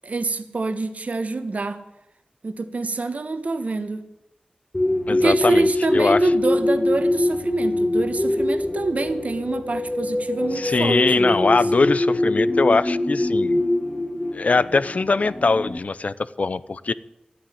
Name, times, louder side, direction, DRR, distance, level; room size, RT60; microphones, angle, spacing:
voice 1, 0.0-1.8 2.4-4.1 5.1-11.6, right 3 dB, 60° right, 9 dB, 1.3 m, -26 dB
sound 1, 4.7-15.8, left 1 dB, 25° left, 2.2 m, -23 dB
voice 2, 5.1-5.7 5.9-6.3 10.5-13.6 14.3-16.9, left 3 dB, 60° left, 16 dB, 0.6 m, -21 dB
12.5 x 9.4 x 10.0 m, 0.85 s
wide cardioid pair, 80°, 3 cm